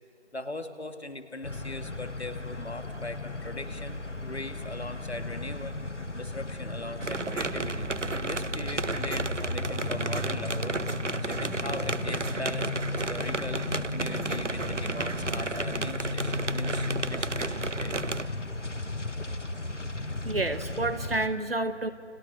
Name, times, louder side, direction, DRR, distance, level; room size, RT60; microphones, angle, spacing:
voice 1, 0.3-5.8 6.2-10.8 11.2-17.9, left 2 dB, 65° left, 8 dB, 2.5 m, -40 dB
sound 1, 1.4-21.3, left 2 dB, 85° left, 2.0 m, -35 dB
sound 2, 7.0-18.3, right 3 dB, 90° right, 1.0 m, -33 dB
voice 2, 20.2-21.9, right 2 dB, 55° right, 11 dB, 1.5 m, -29 dB
30.0 x 28.0 x 6.6 m, 2.5 s
figure-of-eight pair, 160°, 35 cm